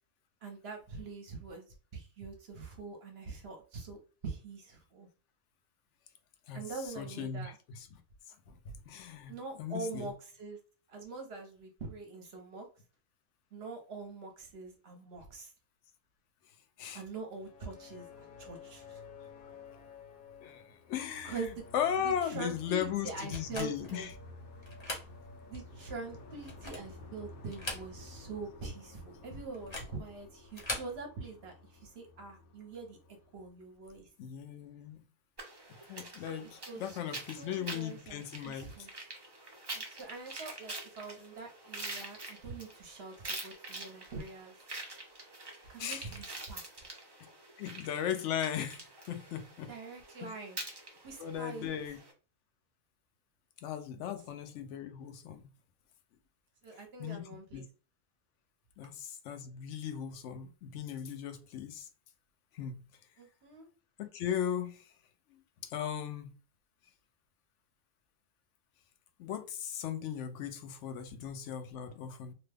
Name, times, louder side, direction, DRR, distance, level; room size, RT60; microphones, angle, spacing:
voice 1, 0.4-1.6 1.9-5.1 6.5-7.6 9.3-10.6 10.9-12.7 13.5-15.5 16.9-19.0 21.2-21.5 22.0-24.1 25.5-33.0 33.3-34.1 36.2-36.4 36.7-37.0 37.4-38.9 39.7-44.5 45.7-46.9 49.7-50.6 51.0-51.7 56.6-57.6 63.2-63.7, right 4 dB, 55° right, 0.9 m, -44 dB
voice 2, 6.5-8.0 8.3-10.1 16.8-17.0 19.4-19.5 20.4-24.1 34.2-35.0 35.9-38.7 45.8-46.2 47.6-49.7 50.2-50.3 51.2-52.0 53.6-55.5 57.0-57.6 58.8-61.9 62.5-62.8 64.0-64.9 65.3-66.3 69.2-72.3, left 9 dB, 65° left, 0.8 m, -37 dB
sound 1, 17.2-34.1, left 3 dB, 85° left, 1.1 m, -52 dB
sound 2, 23.3-24.0 24.6-25.1 25.5-25.6 26.3-27.0 27.4-28.2 28.5-28.6 29.5-30.0 30.5-30.9, left 1 dB, 25° left, 0.7 m, -40 dB
sound 3, 35.4-52.1, right 2 dB, 35° right, 0.4 m, -46 dB
2.8 x 2.2 x 3.3 m
omnidirectional pair, 1.5 m